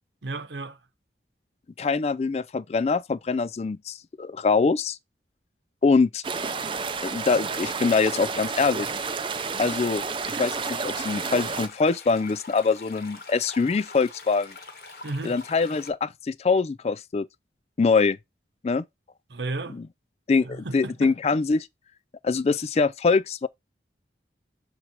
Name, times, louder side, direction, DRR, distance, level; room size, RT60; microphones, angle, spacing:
voice 1, 0.2-0.8 15.0-15.4 19.3-19.7 20.4-21.1, right 2 dB, 80° right, 0.9 m, -33 dB
voice 2, 1.8-5.0 5.8-6.2 7.0-8.9 9.6-14.5 15.2-17.3 17.8-18.2 18.6-18.8 19.7-19.9 20.3-21.7 22.2-23.5, left 4 dB, 35° left, 0.3 m, -24 dB
sound 1, 6.2-11.7, right 5 dB, 30° right, 0.5 m, -30 dB
sound 2, 10.9-15.9, left 3 dB, 55° left, 1.5 m, -44 dB
7.3 x 3.3 x 4.5 m
head